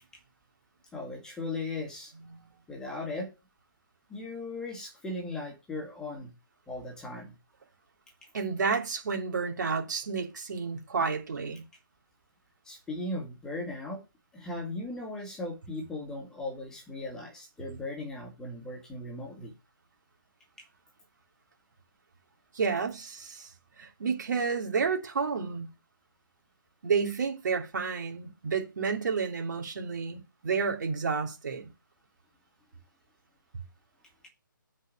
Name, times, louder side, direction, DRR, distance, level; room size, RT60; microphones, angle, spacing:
voice 1, 0.9-2.1 2.7-3.3 4.1-6.3 6.7-7.3 12.7-14.0 14.3-19.5, left 2 dB, 5° left, 2.0 m, -37 dB
voice 2, 8.3-11.6 22.5-23.5 23.8-25.7 26.8-31.7, right 5 dB, 55° right, 2.7 m, -30 dB
8.2 x 4.9 x 6.1 m
hypercardioid pair, 155°, 11 cm